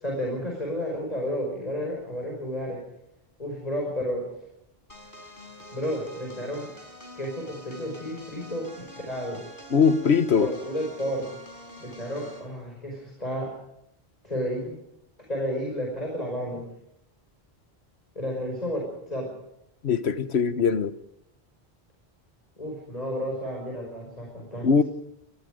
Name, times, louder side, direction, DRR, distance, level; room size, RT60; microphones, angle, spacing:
voice 1, 0.0-2.8 3.4-4.2 5.7-6.7 7.2-9.4 10.4-11.3 11.8-13.5 14.2-14.8 15.3-16.6 18.2-19.3 22.6-24.8, equal, 40° left, 5.7 m, -31 dB
sound 1, 4.9-12.5, left 1 dB, 55° left, 5.1 m, -46 dB
voice 2, 9.7-10.5 19.8-20.9 24.6-24.8, left 6 dB, 85° left, 1.4 m, -21 dB
26.5 x 19.5 x 5.1 m
omnidirectional pair, 1.1 m